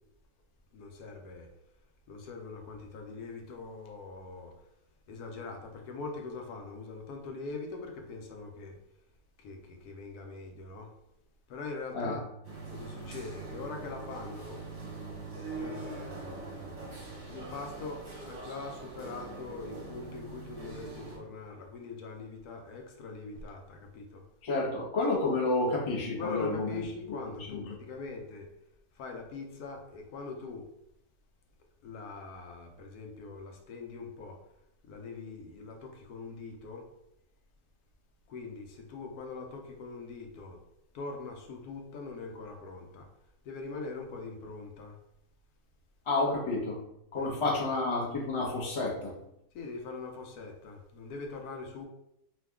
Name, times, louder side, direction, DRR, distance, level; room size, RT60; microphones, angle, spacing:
voice 1, 0.7-1.5 2.1-4.5 5.1-8.8 9.4-10.9 11.5-12.2 12.7-14.6 15.5-24.2 26.2-28.5 29.0-30.7 31.8-34.4 34.8-36.9 38.3-40.6 40.9-43.1 43.4-45.0 47.2-47.4 49.5-51.9, left 3 dB, 80° left, 2 dB, 1.1 m, -42 dB
sound 1, 12.4-21.2, right 3 dB, 35° right, 0.6 m, -43 dB
voice 2, 24.4-26.8 27.5-27.6 46.1-46.8 47.1-49.1, left 2 dB, 35° left, -3 dB, 0.4 m, -30 dB
2.7 x 2.3 x 3.5 m, 0.80 s
omnidirectional pair, 1.6 m